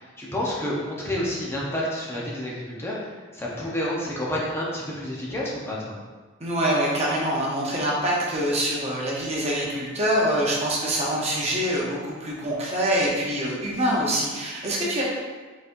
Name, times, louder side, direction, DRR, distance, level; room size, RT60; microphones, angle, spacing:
voice 1, 0.0-6.0, left 1 dB, 10° left, -5 dB, 0.7 m, -29 dB
voice 2, 6.4-15.0, right 1 dB, 30° right, -4 dB, 0.7 m, -25 dB
4.1 x 4.0 x 2.6 m, 1.4 s
head